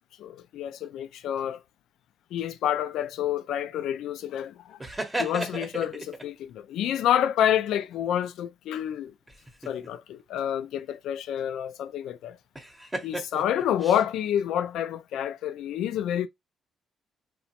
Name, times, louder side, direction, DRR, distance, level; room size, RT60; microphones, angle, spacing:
voice 1, 0.2-1.6 2.3-4.8 5.2-9.1 9.7-12.4 13.0-16.3, left 10 dB, 80° left, 0.3 m, -28 dB
sound 1, 4.8-6.2 9.3-9.9 12.6-14.1, right 1 dB, 15° right, 0.8 m, -34 dB
2.9 x 2.1 x 2.8 m
cardioid pair, 90°, 0 cm